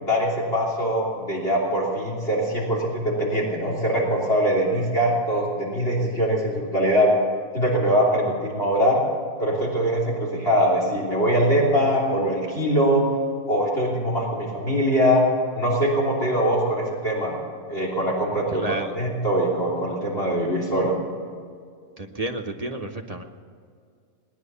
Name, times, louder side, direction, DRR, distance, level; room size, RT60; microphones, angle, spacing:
voice 1, 0.0-7.1 7.5-9.0 9.4-13.1 13.5-15.3 15.5-17.4 17.7-18.6 18.9-21.0, equal, 40° left, -4 dB, 3.5 m, -22 dB
voice 2, 18.5-19.0 22.0-23.2, right 2 dB, 30° right, 3 dB, 0.8 m, -31 dB
19.0 x 10.5 x 6.9 m, 2.2 s
omnidirectional pair, 1.6 m